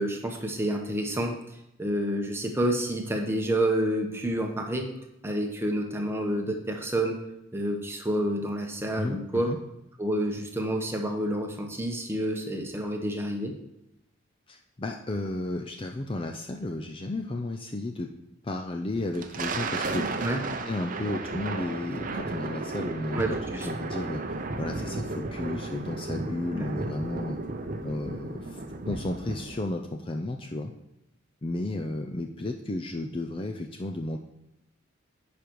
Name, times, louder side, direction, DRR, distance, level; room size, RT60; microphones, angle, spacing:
voice 1, 0.0-1.3 1.8-4.9 5.2-7.2 7.5-9.5 10.0-13.6 20.2-20.4 23.1-23.7 26.3-26.7, right 1 dB, 10° right, 2 dB, 1.0 m, -29 dB
voice 2, 9.0-9.6 14.5-18.1 18.4-20.2 20.7-27.4 27.8-30.7 31.4-34.2, left 2 dB, 25° left, 3 dB, 0.4 m, -33 dB
Thunder, 19.0-29.7, right 3 dB, 40° right, 0.6 m, -34 dB
9.8 x 5.2 x 4.6 m, 0.84 s
head